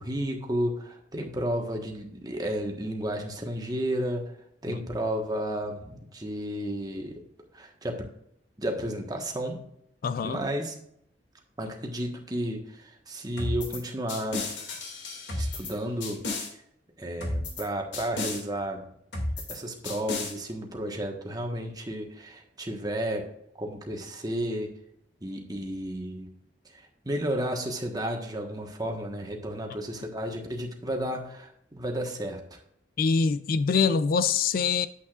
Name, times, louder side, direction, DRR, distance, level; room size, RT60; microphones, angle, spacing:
voice 1, 0.0-4.3 4.6-7.2 7.5-8.1 8.6-9.6 10.2-10.7 11.6-14.5 15.4-16.2 17.0-18.8 19.5-23.3 23.6-24.7 25.2-26.3 26.7-32.4, equal, 20° right, 1.3 m, -32 dB
voice 2, 10.0-10.4 33.0-34.9, left 5 dB, 50° left, 0.3 m, -24 dB
sound 1, 13.4-13.8 14.1-15.7 16.0-16.5 17.2-17.6 17.9-18.4 19.1-19.6 19.8-20.3, left 2 dB, 80° left, 2.3 m, -32 dB
9.2 x 8.1 x 2.4 m
head